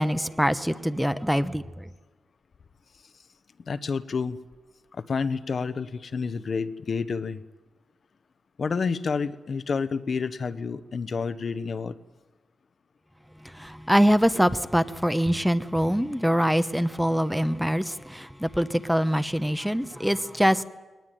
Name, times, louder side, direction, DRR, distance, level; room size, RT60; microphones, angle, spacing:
voice 1, 0.0-1.8 13.5-20.6, equal, ahead, 0.9 m, -24 dB
voice 2, 3.7-4.4 5.0-7.4 8.6-12.0, left 5 dB, 55° left, 1.0 m, -29 dB
20.5 x 20.0 x 9.2 m
cardioid pair, 95°, 0 cm